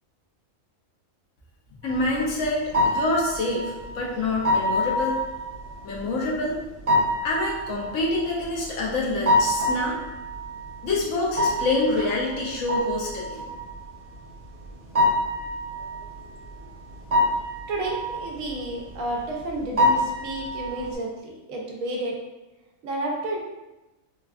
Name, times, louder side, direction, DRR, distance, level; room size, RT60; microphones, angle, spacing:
voice 1, 1.8-5.2 5.8-6.6 7.2-10.0 10.8-13.4, left 2 dB, 70° left, -3 dB, 1.0 m, -26 dB
sound 1, 1.8-21.0, left 1 dB, 40° right, 0.5 m, -27 dB
voice 2, 17.7-22.1 22.8-23.4, right 1 dB, 75° right, -1 dB, 1.0 m, -31 dB
3.4 x 2.3 x 2.3 m, 1.0 s
omnidirectional pair, 1.4 m